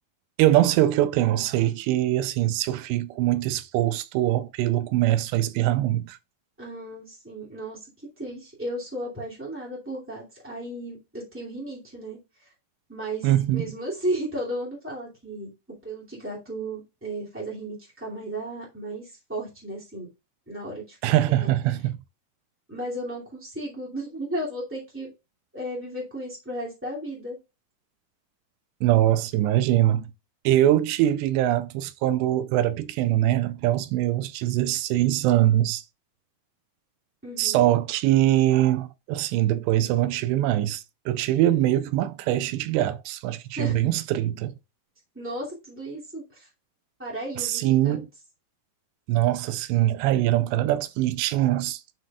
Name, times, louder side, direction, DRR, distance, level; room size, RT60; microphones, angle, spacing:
voice 1, 0.4-6.2 13.2-13.7 21.0-22.0 28.8-30.0 30.5-35.8 37.4-44.5 47.4-48.1 49.1-51.8, right 13 dB, 85° right, 2.7 m, -23 dB
voice 2, 6.6-7.9 8.2-12.5 12.9-15.5 15.8-20.1 20.5-21.0 21.3-21.5 22.7-25.1 25.5-27.4 37.2-37.7 43.5-43.7 45.1-46.5 47.0-48.0, right 1 dB, 5° right, 1.1 m, -34 dB
9.3 x 5.9 x 2.3 m
omnidirectional pair, 4.9 m